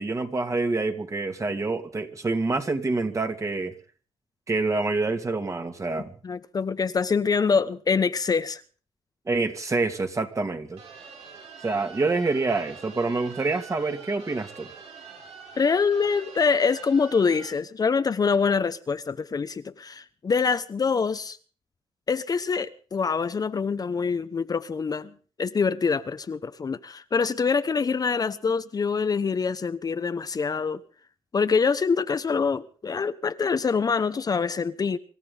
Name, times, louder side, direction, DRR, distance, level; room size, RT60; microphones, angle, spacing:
voice 1, 0.0-3.7 4.5-6.1 9.3-10.8 11.6-14.7, right 3 dB, 30° right, 2.4 m, -27 dB
voice 2, 6.2-8.6 15.6-21.4 22.1-25.1 25.4-30.8 31.3-35.0, left 5 dB, 40° left, 1.0 m, -25 dB
sound 1, 10.8-17.5, right 5 dB, 85° right, 3.8 m, -45 dB
26.0 x 13.5 x 3.9 m
cardioid pair, 80°, 10 cm